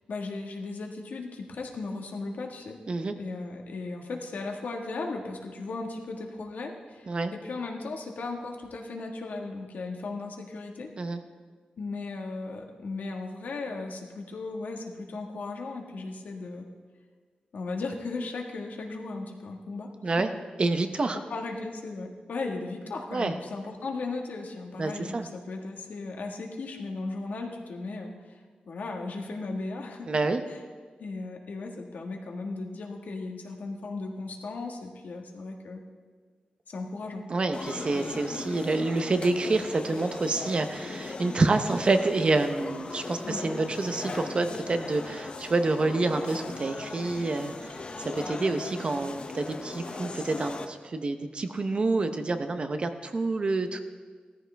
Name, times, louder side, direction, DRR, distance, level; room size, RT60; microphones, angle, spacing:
voice 1, 0.1-2.8 3.2-10.9 11.8-16.6 17.5-19.9 21.3-30.1 30.5-30.6 31.0-35.8 36.7-37.2 43.2-43.4, left 3 dB, 75° left, 1 dB, 1.6 m, -36 dB
voice 2, 20.6-21.2 23.1-23.3 24.8-25.3 30.1-30.4 37.3-53.8, right 3 dB, 40° right, 8 dB, 0.7 m, -28 dB
sound 1, 37.5-50.7, left 3 dB, 40° left, 0.7 m, -38 dB
17.0 x 14.0 x 3.4 m, 1.5 s
wide cardioid pair, 170°, 3 cm